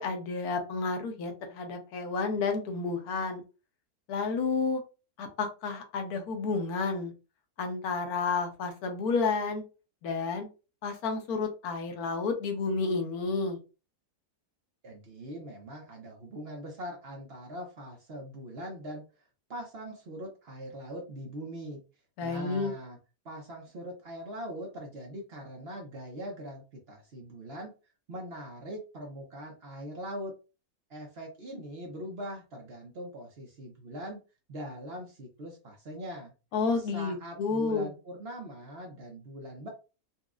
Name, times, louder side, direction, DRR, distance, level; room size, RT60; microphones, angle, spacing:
voice 1, 0.0-3.4 4.1-4.8 5.2-7.1 7.6-9.6 10.0-10.5 10.8-13.6 22.2-22.7 36.5-37.9, left 4 dB, 80° left, 5 dB, 1.2 m, -31 dB
voice 2, 14.8-19.0 19.5-21.8 22.2-23.0 23.2-27.7 28.1-30.3 30.9-34.2 34.5-36.3 36.8-39.7, equal, 50° right, 1 dB, 0.8 m, -41 dB
4.1 x 2.3 x 2.4 m, 0.32 s
omnidirectional pair, 1.6 m